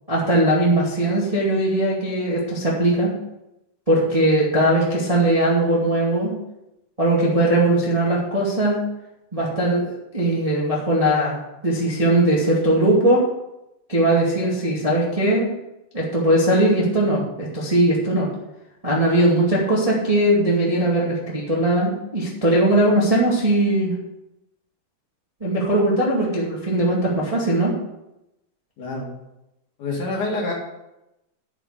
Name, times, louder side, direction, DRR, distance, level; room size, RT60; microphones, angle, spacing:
voice 1, 0.1-3.1 3.9-6.3 7.0-8.8 9.3-13.2 13.9-15.5 15.9-18.3 18.8-23.9 25.4-27.7, right 1 dB, 15° right, -5 dB, 1.7 m, -19 dB
voice 2, 28.8-29.1 29.8-30.5, left 2 dB, 60° left, -2 dB, 3.6 m, -26 dB
10.0 x 6.7 x 6.7 m, 0.89 s
omnidirectional pair, 4.2 m